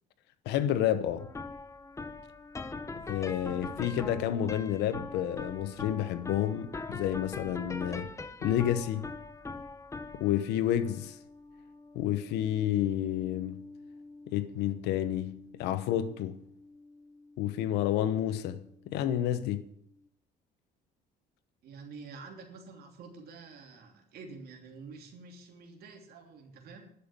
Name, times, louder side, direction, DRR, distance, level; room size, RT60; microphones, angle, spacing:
voice 1, 0.4-1.3 3.1-8.1 8.4-9.1 10.2-11.2 11.9-13.6 14.3-16.4 17.4-19.6, left 11 dB, 85° left, 1.0 m, -30 dB
sound 1, 1.2-18.4, left 3 dB, 15° left, 0.9 m, -43 dB
voice 2, 21.6-26.9, right 4 dB, 65° right, 3.0 m, -48 dB
11.5 x 7.1 x 8.9 m
cardioid pair, 110°, 17 cm